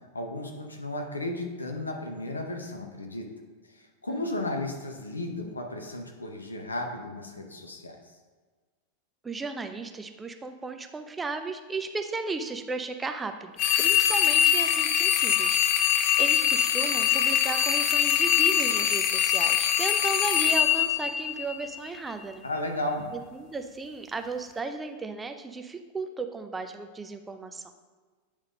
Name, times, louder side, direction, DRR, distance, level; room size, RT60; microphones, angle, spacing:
voice 1, 0.1-3.3 3.7-8.1 22.4-23.1, left 1 dB, 80° left, 4 dB, 1.0 m, -34 dB
voice 2, 9.2-13.5 13.8-15.6 16.2-22.4 23.3-27.6, right 3 dB, 15° right, 6 dB, 0.6 m, -35 dB
sound 1, 13.6-21.8, left 10 dB, 45° left, 0.5 m, -23 dB
8.7 x 4.0 x 5.1 m, 1.4 s
figure-of-eight pair, 90°, 0 cm